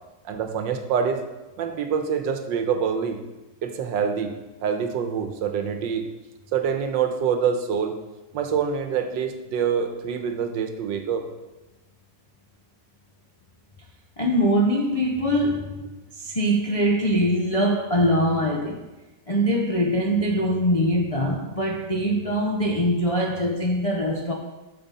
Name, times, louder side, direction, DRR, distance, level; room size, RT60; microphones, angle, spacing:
voice 1, 0.2-1.3 1.6-3.2 3.6-4.4 4.6-6.1 6.5-8.0 8.3-11.2, right 7 dB, 85° right, 1.5 m, -25 dB
voice 2, 14.2-15.8 16.2-18.8 19.3-24.3, equal, 65° left, 0.3 m, -23 dB
8.9 x 6.6 x 4.2 m
omnidirectional pair, 2.0 m